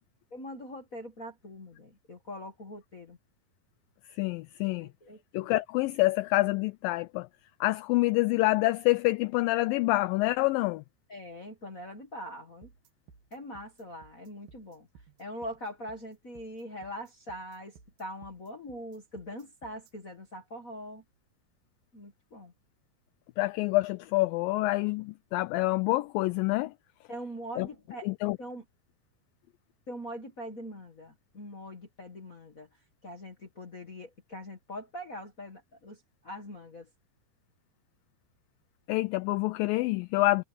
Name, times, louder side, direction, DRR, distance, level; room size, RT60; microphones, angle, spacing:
voice 1, 0.3-3.2 4.8-5.5 11.1-12.7 13.3-14.9 15.2-21.0 21.9-22.5 27.1-28.1 28.4-28.6 29.9-32.7 33.0-36.9, equal, 50° left, 0.9 m, -42 dB
voice 2, 4.2-4.9 5.3-7.3 7.6-10.8 23.4-26.7 27.6-27.7 28.0-28.4 38.9-40.4, left 20 dB, 80° left, 2.1 m, -27 dB
sound 1, 12.6-19.9, right 6 dB, 70° right, 3.6 m, -57 dB
omnidirectional pair, 4.5 m